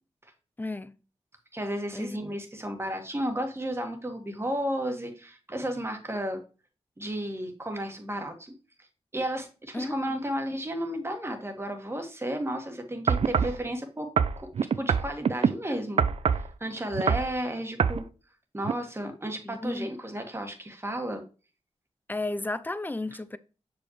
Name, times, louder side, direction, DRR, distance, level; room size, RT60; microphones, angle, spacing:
voice 1, 0.6-0.9 1.9-2.2 9.7-10.2 19.4-19.9 22.1-23.4, left 2 dB, 15° left, 0.5 m, -33 dB
voice 2, 1.5-6.4 7.0-8.5 9.1-14.1 14.4-14.5 14.8-16.0 16.3-18.0 18.5-21.2, equal, 20° right, 1.6 m, -33 dB
sound 1, 13.1-13.6 14.2-15.5 16.0-16.5 16.9-17.3 17.8-18.0 18.6-18.7, right 6 dB, 60° right, 0.4 m, -24 dB
6.5 x 5.1 x 3.1 m
cardioid pair, 60°, 11 cm